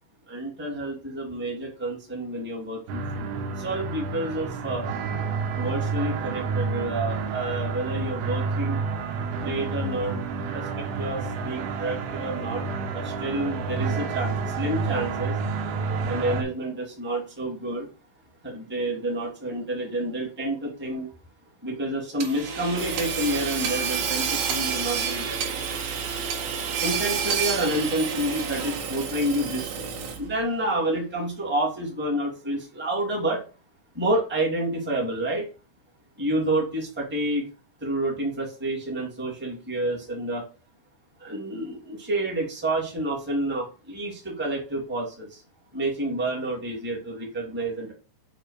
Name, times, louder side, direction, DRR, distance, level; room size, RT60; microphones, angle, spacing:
voice 1, 0.3-4.9 5.5-8.8 9.4-12.7 12.9-15.4 16.0-17.9 18.4-21.1 21.6-25.4 26.8-29.9 30.2-33.4 33.9-35.5 36.2-37.4 37.8-40.4 41.2-45.4 45.7-47.9, right 1 dB, 10° right, -2 dB, 0.6 m, -29 dB
sound 1, 2.9-16.4, right 4 dB, 90° right, 3.7 m, -29 dB
Hammer / Sawing, 22.2-30.4, right 6 dB, 65° right, 3.6 m, -29 dB
8.7 x 3.0 x 6.5 m, 0.35 s
omnidirectional pair, 5.3 m